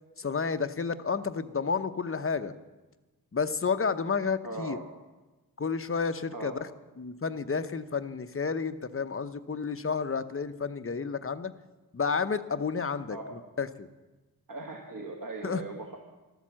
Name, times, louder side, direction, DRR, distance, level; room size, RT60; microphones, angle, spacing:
voice 1, 0.2-2.5 3.3-4.8 5.6-6.6 7.0-11.5 11.9-13.9 15.4-15.6, left 5 dB, 35° left, 10 dB, 0.8 m, -31 dB
voice 2, 4.4-4.8 6.3-6.5 13.1-13.3 14.5-16.0, right 3 dB, 60° right, 1 dB, 1.8 m, -39 dB
13.0 x 13.0 x 7.6 m, 1.2 s
wide cardioid pair, 80°, 37 cm